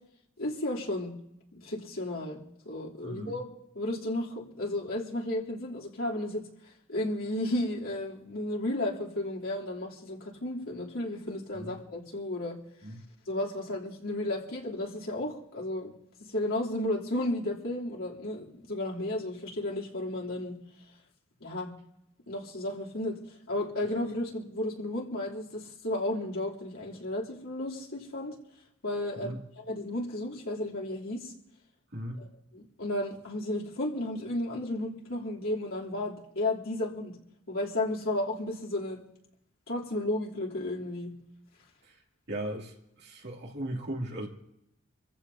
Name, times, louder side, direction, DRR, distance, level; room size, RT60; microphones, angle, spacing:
voice 1, 0.4-1.1 1.5-3.5 3.7-6.5 6.9-12.6 13.3-15.9 16.2-20.6 21.4-21.7 22.3-23.2 23.5-28.3 28.8-29.3 29.7-31.3 32.2-32.3 32.5-37.1 37.5-39.0 39.7-41.1, left 1 dB, 90° left, -4 dB, 3.3 m, -33 dB
voice 2, 3.0-3.4 11.5-11.7 12.8-13.0 29.2-29.4 31.9-32.2 41.8-42.0 42.3-44.3, right 1 dB, 55° right, -1 dB, 2.7 m, -37 dB
27.5 x 15.0 x 2.8 m, 0.81 s
head